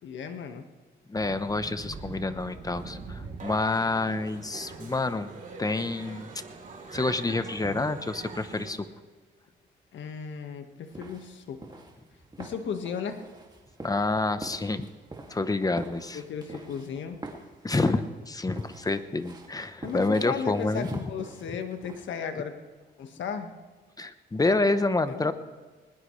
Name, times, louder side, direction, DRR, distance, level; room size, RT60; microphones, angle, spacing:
voice 1, 0.0-0.7 9.9-11.8 12.4-13.2 16.1-17.2 19.8-22.6 23.0-23.6 25.1-25.3, left 6 dB, 70° left, 6 dB, 1.7 m, -35 dB
voice 2, 1.1-5.3 5.6-6.3 6.9-8.9 13.8-14.9 15.3-16.2 17.6-20.9 24.0-25.3, left 2 dB, 20° left, 11 dB, 1.0 m, -28 dB
sound 1, 1.1-9.0, right 3 dB, 40° right, 3.5 m, -42 dB
sound 2, 10.9-22.1, right 2 dB, 20° right, 2.5 m, -45 dB
20.0 x 19.5 x 3.3 m, 1.4 s
cardioid pair, 90°, 20 cm